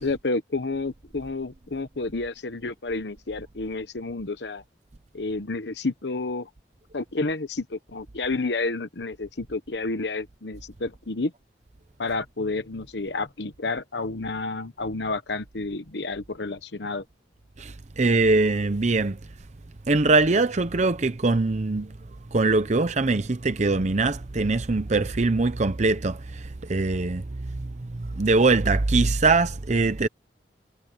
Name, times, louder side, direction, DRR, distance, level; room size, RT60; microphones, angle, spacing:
voice 1, 0.0-4.6 5.1-6.5 6.9-11.3 12.0-17.0, left 3 dB, 75° left, 1.1 m, -30 dB
voice 2, 17.6-19.2 19.9-21.9 22.3-30.1, right 3 dB, 40° right, 0.7 m, -22 dB
head